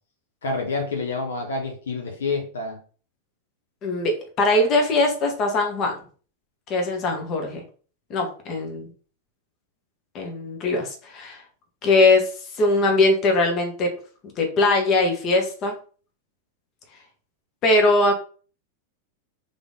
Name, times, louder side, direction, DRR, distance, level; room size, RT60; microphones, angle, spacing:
voice 1, 0.4-2.8, left 3 dB, 65° left, 2 dB, 1.0 m, -28 dB
voice 2, 3.8-6.0 6.7-7.6 8.1-8.9 10.1-11.4 11.8-13.9 14.4-15.7 17.6-18.1, left 2 dB, 35° left, 2 dB, 1.2 m, -21 dB
3.6 x 3.5 x 3.7 m, 0.41 s
figure-of-eight pair, 90°, 0 cm